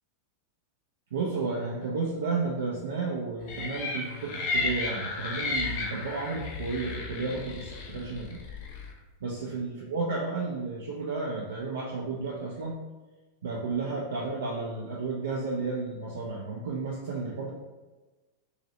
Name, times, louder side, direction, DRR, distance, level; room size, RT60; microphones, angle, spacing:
voice 1, 1.1-8.4 9.2-12.8 13.4-17.5, right 3 dB, 65° right, -3 dB, 0.4 m, -32 dB
sound 1, 3.5-8.9, left 3 dB, 50° left, 0.6 m, -33 dB
2.8 x 2.7 x 3.0 m, 1.2 s
figure-of-eight pair, 90°, 0 cm